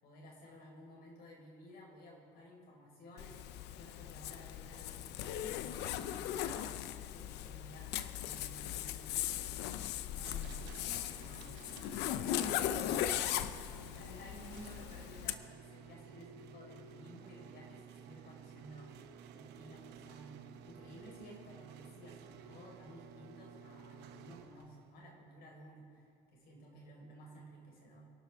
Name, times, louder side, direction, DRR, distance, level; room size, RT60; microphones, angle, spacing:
voice 1, 0.0-9.7 10.1-11.6 12.1-28.0, equal, 65° left, -2 dB, 4.2 m, -55 dB
Zipper (clothing), 3.2-15.4, left 11 dB, 85° left, 0.6 m, -38 dB
sound 1, 10.2-24.9, right 7 dB, 85° right, 0.8 m, -54 dB
23.5 x 11.5 x 3.5 m, 2.2 s
cardioid pair, 110°, 17 cm